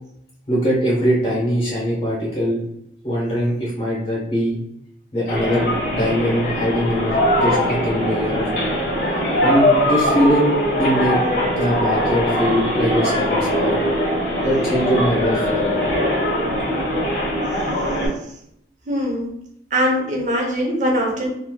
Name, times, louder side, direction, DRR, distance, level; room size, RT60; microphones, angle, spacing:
voice 1, 0.5-2.6 3.0-4.6 5.1-8.7 9.4-11.2 11.5-13.8 14.4-15.8, equal, 35° left, -5 dB, 1.0 m, -22 dB
sound 1, 5.3-18.1, equal, 65° left, 1.2 m, -21 dB
voice 2, 18.9-19.3 19.7-21.3, equal, 45° right, -1 dB, 0.8 m, -21 dB
3.0 x 2.8 x 2.2 m, 0.75 s
head